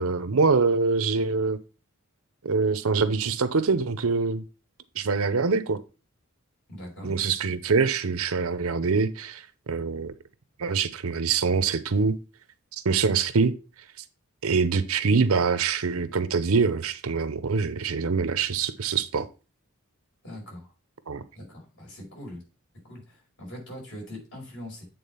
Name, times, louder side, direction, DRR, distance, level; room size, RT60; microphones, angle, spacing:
voice 1, 0.0-1.6 2.4-4.4 5.0-5.8 7.0-10.1 10.6-12.2 12.8-13.5 14.4-19.3 21.1-21.2, right 4 dB, 65° right, 0.7 m, -24 dB
voice 2, 6.7-7.1 20.2-20.7 21.3-22.4 22.8-24.9, left 1 dB, 55° left, 5.1 m, -41 dB
8.5 x 3.8 x 5.5 m
head